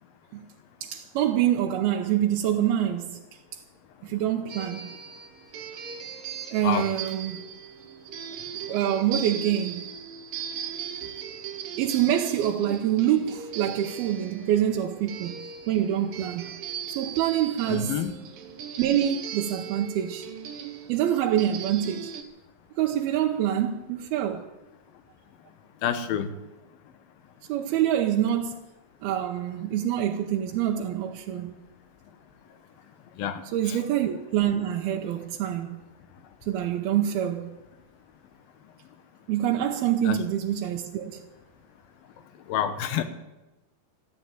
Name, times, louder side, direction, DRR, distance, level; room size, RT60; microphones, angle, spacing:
voice 1, 0.8-3.2 3.5-3.6 4.0-4.9 6.5-7.4 8.7-9.9 11.8-16.6 16.9-18.0 18.8-20.3 20.9-22.1 22.8-24.5 27.5-28.6 29.0-31.6 33.5-35.8 36.4-37.6 39.3-41.2, right 11 dB, 85° right, 2.9 m, -26 dB
sound 1, 4.5-22.2, right 8 dB, 70° right, 3.0 m, -38 dB
voice 2, 17.7-18.1 25.8-26.3 33.2-33.4 33.7-33.8 40.1-40.2 42.5-43.0, left 9 dB, 75° left, 2.9 m, -27 dB
13.5 x 12.0 x 8.9 m
omnidirectional pair, 4.4 m